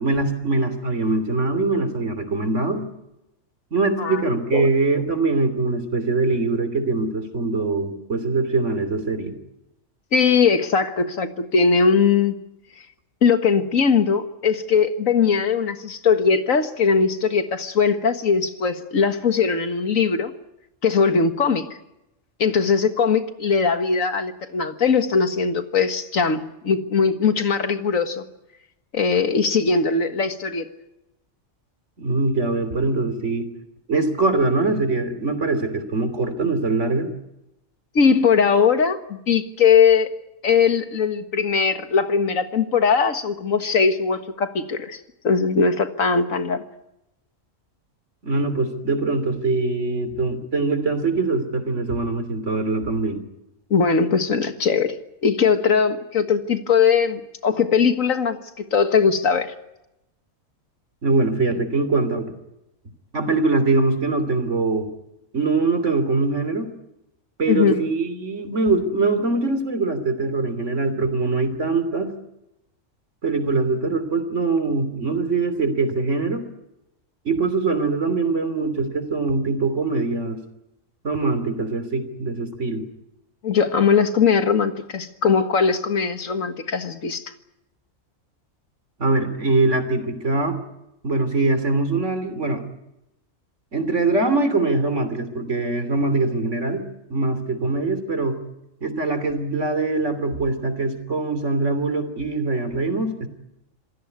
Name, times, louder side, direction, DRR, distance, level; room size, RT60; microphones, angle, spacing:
voice 1, 0.0-2.9 3.7-9.4 32.0-33.5 33.9-37.1 48.2-53.2 61.0-62.3 63.1-64.9 65.3-66.7 67.4-72.1 73.2-76.5 77.3-80.4 81.0-82.9 89.0-90.6 91.0-92.6 93.7-96.9 97.1-98.4 98.8-103.3, right 3 dB, 65° right, 10 dB, 3.4 m, -23 dB
voice 2, 10.1-12.4 13.2-20.3 20.8-21.7 22.4-28.2 28.9-30.7 38.0-40.1 40.4-45.0 45.2-46.6 53.7-55.0 55.2-59.5 67.5-67.8 83.4-87.2, left 5 dB, 85° left, 9 dB, 2.0 m, -20 dB
27.0 x 16.5 x 9.6 m, 0.90 s
omnidirectional pair, 1.4 m